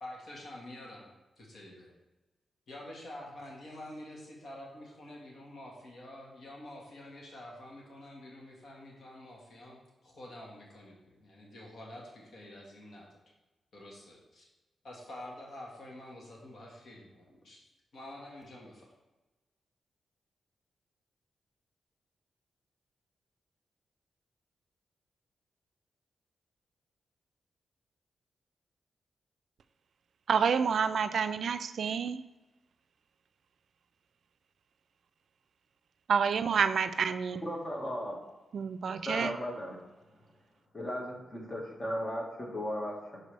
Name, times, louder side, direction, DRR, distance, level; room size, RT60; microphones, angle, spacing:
voice 1, 0.0-1.9 2.7-13.2 13.7-14.5 14.8-17.6 17.9-18.9, left 1 dB, 65° left, -2 dB, 1.6 m, -48 dB
voice 2, 30.3-32.2 36.1-37.4 38.5-39.3, right 6 dB, 70° right, 11 dB, 0.3 m, -28 dB
voice 3, 37.4-38.2 39.1-39.8 40.7-43.2, equal, 35° left, -1 dB, 1.6 m, -36 dB
6.6 x 4.8 x 3.3 m, 1.1 s
cardioid pair, 75°, 0 cm